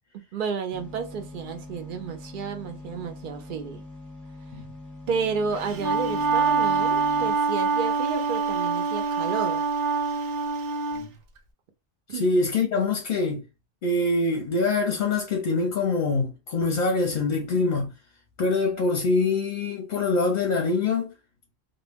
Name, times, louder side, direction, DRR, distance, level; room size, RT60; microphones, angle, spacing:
voice 1, 0.1-3.8 5.1-9.6 12.1-12.3, right 5 dB, 60° right, 0.6 m, -31 dB
sound 1, 0.7-7.3, left 2 dB, ahead, 0.9 m, -43 dB
Wind instrument woodwind instrument, 5.6-11.0, right 5 dB, 85° right, 1.0 m, -25 dB
voice 2, 12.2-13.4 13.8-17.9 18.4-21.1, left 3 dB, 50° left, 0.7 m, -24 dB
2.2 x 2.1 x 3.3 m
omnidirectional pair, 1.1 m